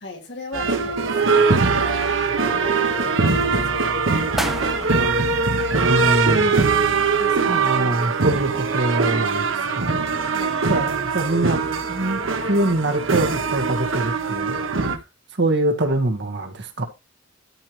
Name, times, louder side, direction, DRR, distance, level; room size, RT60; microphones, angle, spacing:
voice 1, 0.0-1.9 2.3-4.7 7.2-8.0 10.2-10.7 11.3-11.4, left 1 dB, 65° left, 2.5 m, -37 dB
sound 1, 0.5-15.0, right 4 dB, 80° right, 1.1 m, -21 dB
sound 2, 0.9-1.4 1.8-2.7 3.2-3.6 4.0-4.1 4.4-6.3 6.6-6.7, equal, ahead, 1.0 m, -33 dB
voice 2, 5.8-6.6 7.5-9.5 9.7-10.0 10.7-11.6 11.9-14.6 15.4-16.8, right 1 dB, 60° right, 1.8 m, -23 dB
13.0 x 4.7 x 3.2 m
head